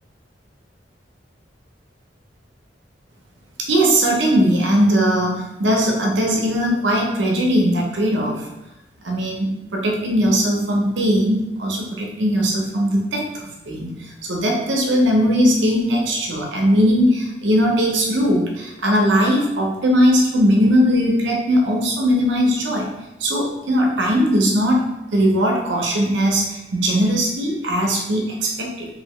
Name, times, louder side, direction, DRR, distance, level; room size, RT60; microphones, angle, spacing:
voice 1, 3.6-8.5 9.0-22.9 23.2-24.8 25.1-28.9, equal, 75° right, 0 dB, 0.6 m, -19 dB
2.8 x 2.7 x 3.1 m, 0.92 s
head